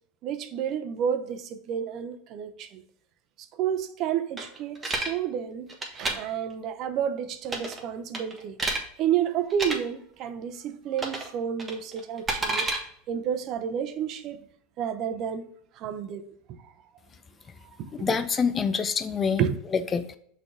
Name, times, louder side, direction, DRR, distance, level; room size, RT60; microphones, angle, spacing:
voice 1, 0.2-2.8 3.6-5.7 5.9-8.6 9.0-12.7 13.1-14.4 14.8-15.4 15.8-16.2 16.5-16.6 17.6-18.2 19.4-19.5, right 9 dB, 50° right, 0.7 m, -30 dB
sound 1, 4.4-5.1 5.7-6.1 7.4-7.8 8.1-8.8 9.5-9.8 11.0-11.3 11.6-12.8, right 2 dB, 20° right, 1.4 m, -29 dB
voice 2, 18.0-19.5 19.7-20.2, left 6 dB, 25° left, 0.5 m, -26 dB
6.0 x 3.4 x 4.8 m
hypercardioid pair, 100°, 0 cm